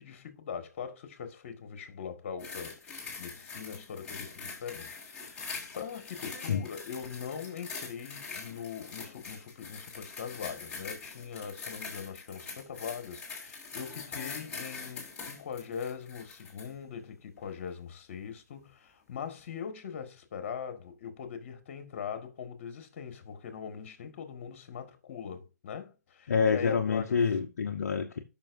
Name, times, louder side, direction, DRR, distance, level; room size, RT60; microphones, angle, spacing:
voice 1, 0.0-2.9 3.2-27.2, left 7 dB, 40° left, 1.8 m, -41 dB
sound 1, 2.4-16.7 17.4-17.5, left 4 dB, 10° left, 2.6 m, -43 dB
voice 2, 26.3-28.2, left 6 dB, 55° left, 1.0 m, -27 dB
13.5 x 5.9 x 2.6 m
figure-of-eight pair, 140°, 9 cm